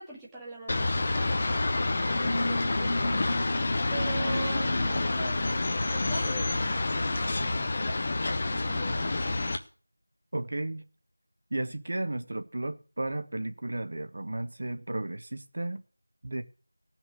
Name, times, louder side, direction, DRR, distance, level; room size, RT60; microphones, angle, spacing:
voice 1, 0.0-1.6 2.4-2.9 3.9-5.4 5.9-8.1 8.5-9.7, right 3 dB, 5° right, 1.6 m, -42 dB
sound 1, 0.7-9.6, left 2 dB, 25° left, 1.0 m, -28 dB
sound 2, 2.1-7.3, left 1 dB, 65° left, 1.3 m, -36 dB
voice 2, 10.3-10.8 11.5-15.8 16.2-16.4, right 2 dB, 40° right, 1.3 m, -34 dB
16.5 x 6.1 x 7.8 m
figure-of-eight pair, 175°, 0 cm